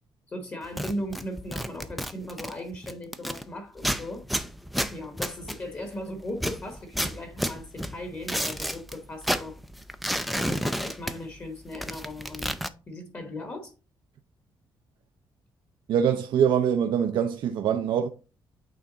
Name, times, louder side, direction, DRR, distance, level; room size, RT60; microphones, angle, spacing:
voice 1, 0.3-4.3 4.9-9.5 10.3-12.6 12.9-13.7, left 1 dB, 25° left, 1.1 m, -37 dB
sound 1, 0.6-3.4 3.8-6.0 6.3-9.0 9.2-11.5 11.7-12.7, equal, ahead, 0.4 m, -31 dB
voice 2, 15.9-18.1, right 8 dB, 65° right, 0.5 m, -24 dB
8.5 x 3.3 x 3.8 m
cardioid pair, 160°, 9 cm